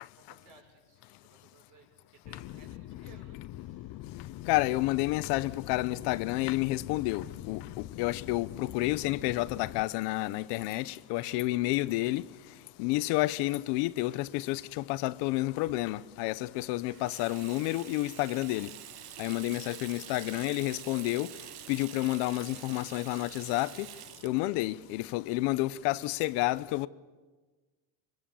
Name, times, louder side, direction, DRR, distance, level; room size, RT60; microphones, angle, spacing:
voice 1, 0.0-1.9 2.1-4.3, right 4 dB, 50° right, 6.5 m, -60 dB
sound 1, 2.2-9.8, left 14 dB, 55° left, 0.7 m, -43 dB
voice 2, 4.5-12.2 12.8-18.7 19.2-21.3 21.7-23.9 24.2-26.9, left 19 dB, 90° left, 0.8 m, -30 dB
Water tap faucet / Sink (filling or washing), 16.9-26.2, right 14 dB, 65° right, 1.0 m, -47 dB
23.0 x 22.5 x 7.1 m
cardioid pair, 145°, 40 cm